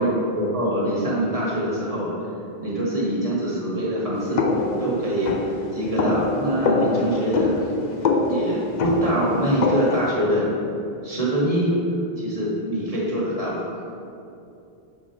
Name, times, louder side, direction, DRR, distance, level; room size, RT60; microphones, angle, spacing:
voice 1, 0.0-2.1 2.6-4.4 4.8-5.3 5.7-7.6 8.2-10.5 11.0-11.8 12.2-13.6, right 1 dB, 35° right, -6 dB, 1.6 m, -24 dB
sound 1, 4.4-10.1, left 4 dB, 50° left, 0.6 m, -24 dB
7.0 x 4.3 x 4.5 m, 2.6 s
omnidirectional pair, 1.1 m